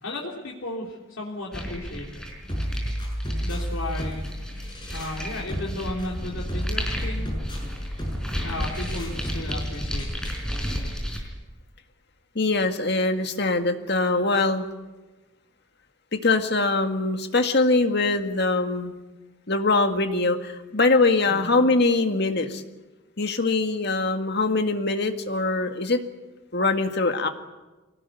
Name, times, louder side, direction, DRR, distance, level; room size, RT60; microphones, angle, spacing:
voice 1, 0.0-2.2 3.4-4.2 4.9-7.3 8.4-10.2 21.3-21.5, left 1 dB, 85° left, -2 dB, 3.3 m, -34 dB
sound 1, 1.5-11.2, equal, 5° left, 4.7 m, -33 dB
sound 2, 2.5-10.5, equal, 25° left, 6.6 m, -32 dB
voice 2, 12.4-14.7 16.1-18.9 19.5-22.6 23.2-26.0 26.5-27.3, left 3 dB, 55° left, 6 dB, 1.9 m, -23 dB
24.0 x 18.5 x 9.3 m, 1.1 s
head